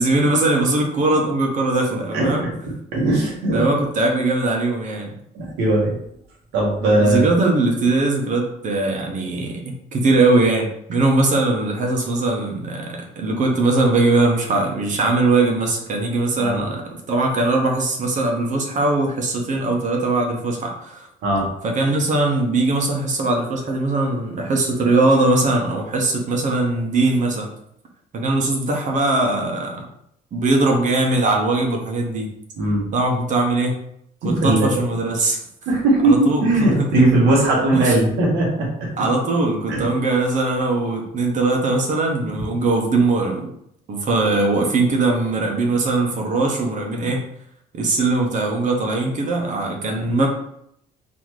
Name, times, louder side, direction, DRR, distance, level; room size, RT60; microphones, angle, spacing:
voice 1, 0.0-2.4 3.5-5.1 7.0-21.1 21.6-27.5 28.1-29.8 30.3-32.3 32.9-33.8 34.2-35.4 36.0-37.0 37.7-38.0 39.0-43.5 43.9-47.2 47.7-50.3, right 2 dB, 50° right, 1 dB, 1.0 m, -20 dB
voice 2, 2.9-3.6 5.3-5.9 6.5-7.2 16.4-16.7 21.2-21.5 32.6-32.8 34.2-34.7 35.6-38.9 39.7-39.8, right 2 dB, 90° right, -3 dB, 1.6 m, -18 dB
4.1 x 2.9 x 3.1 m, 0.73 s
cardioid pair, 110°, 17 cm